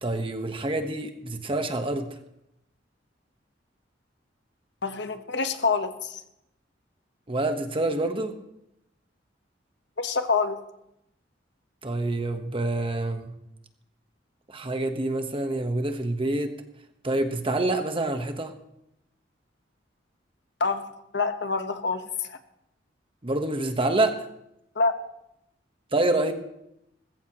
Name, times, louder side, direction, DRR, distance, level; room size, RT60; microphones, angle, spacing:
voice 1, 0.0-2.1 7.3-8.3 11.8-13.3 14.5-16.5 17.0-18.5 23.2-24.2 25.9-26.3, right 2 dB, 30° right, 6 dB, 1.2 m, -27 dB
voice 2, 4.8-6.2 10.0-10.6 20.6-20.8 21.1-22.0 22.3-22.4 24.8-25.0, left 4 dB, 70° left, 7 dB, 1.2 m, -26 dB
19.5 x 15.0 x 3.0 m, 0.82 s
head